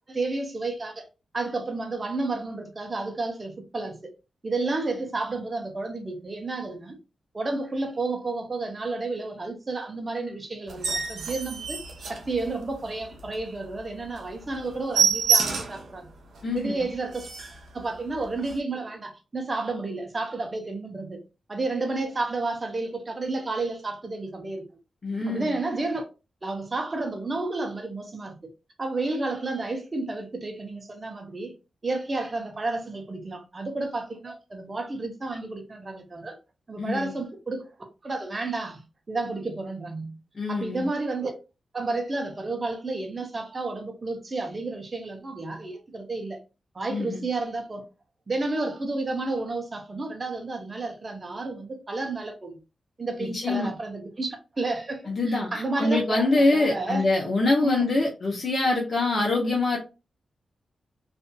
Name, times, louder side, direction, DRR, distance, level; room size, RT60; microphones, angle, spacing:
voice 1, 0.1-1.0 1.3-4.0 4.4-7.0 7.3-11.8 12.1-16.1 16.5-17.3 17.7-21.2 21.5-24.6 25.3-26.1 26.4-28.4 28.8-31.5 31.8-36.4 36.7-37.7 38.0-40.2 40.5-41.3 41.7-46.4 46.7-47.8 48.3-52.6 53.0-57.1 57.6-57.8, right 3 dB, 40° right, 0.7 m, -31 dB
sound 1, 10.7-12.8 13.2-13.4 13.8-13.9 14.2-14.3 14.5-15.9 16.4-16.5 16.8-16.9 17.1-17.6 18.4-18.5, right 5 dB, 80° right, 0.6 m, -26 dB
voice 2, 16.4-16.8 25.0-25.5 36.8-37.1 40.4-40.9 46.9-47.2 53.2-53.7 55.1-59.8, left 2 dB, 50° left, 0.8 m, -24 dB
2.6 x 2.5 x 2.2 m
cardioid pair, 55°, 0 cm